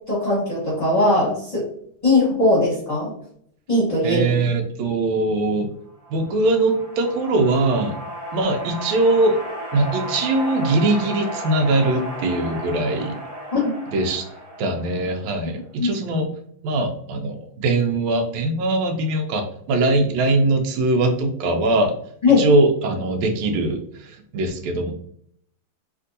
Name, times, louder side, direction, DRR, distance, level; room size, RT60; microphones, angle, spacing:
voice 1, 0.1-1.6 2.0-3.1 3.7-4.2 13.5-13.7 15.8-16.0 22.2-22.4, left 2 dB, 30° left, -8 dB, 0.9 m, -19 dB
voice 2, 4.0-5.7 6.1-7.9 8.3-9.4 9.7-13.2 13.9-14.2 14.6-16.3 16.6-21.9 22.4-24.9, right 2 dB, 85° right, 4 dB, 1.4 m, -21 dB
sound 1, 6.0-15.6, equal, 40° right, 1.1 m, -34 dB
3.4 x 2.5 x 2.6 m, 0.65 s
omnidirectional pair, 2.2 m